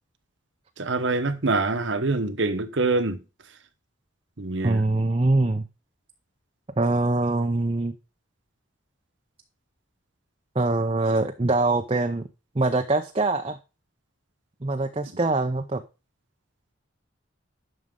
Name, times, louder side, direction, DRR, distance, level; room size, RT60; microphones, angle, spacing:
voice 1, 0.8-3.2 4.4-4.8, right 3 dB, 65° right, 1.1 m, -25 dB
voice 2, 4.6-5.6 6.8-7.9 10.6-12.2 12.6-13.6 14.6-15.8, right 2 dB, 30° right, 0.6 m, -23 dB
11.0 x 6.5 x 3.7 m
head